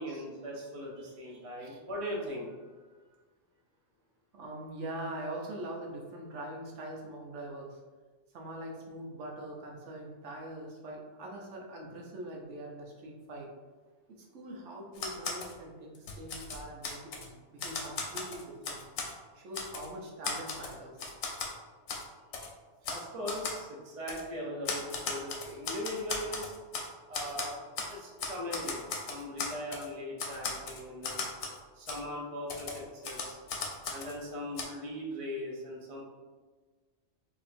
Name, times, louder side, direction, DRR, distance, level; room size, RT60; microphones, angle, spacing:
voice 1, 0.0-2.8 22.9-26.5 27.1-27.6 27.9-31.2 31.7-33.4 33.9-36.0, equal, 35° right, -3 dB, 0.7 m, -39 dB
voice 2, 4.3-7.8 8.3-13.5 14.1-18.8 19.3-21.0 22.8-23.0 27.1-27.4, right 1 dB, 85° right, 0 dB, 1.0 m, -43 dB
Typewriter, 15.0-15.5 16.0-17.3 17.6-19.1 19.5-19.9 20.2-21.5 21.9-22.0 22.3-22.5 22.8-23.0 23.3-23.6 24.1-24.2 24.7-26.9 27.1-27.9 28.2-29.9 30.2-31.6 31.9-32.0 32.5-34.2 34.6-34.7, left 4 dB, 75° left, 0.9 m, -37 dB
4.2 x 2.8 x 2.6 m, 1.4 s
omnidirectional pair, 1.2 m